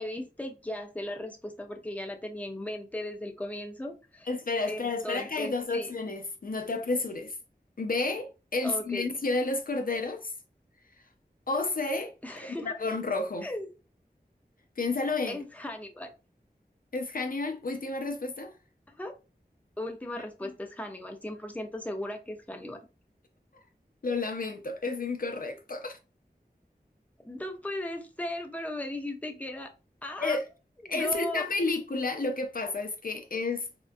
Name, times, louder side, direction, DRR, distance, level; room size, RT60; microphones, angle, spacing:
voice 1, 0.0-4.3 4.7-5.9 8.6-9.1 12.2-12.7 13.4-13.7 15.3-16.1 18.9-19.1 19.8-22.8 27.2-29.7 30.0-30.4 30.8-31.4, left 1 dB, 10° left, 0.5 m, -37 dB
voice 2, 4.3-7.4 7.8-10.3 11.5-13.5 14.8-15.4 16.9-18.5 20.4-20.5 24.0-26.0 30.2-30.5 30.9-33.7, left 3 dB, 60° left, 0.4 m, -31 dB
3.6 x 2.2 x 2.5 m
wide cardioid pair, 45°, 16 cm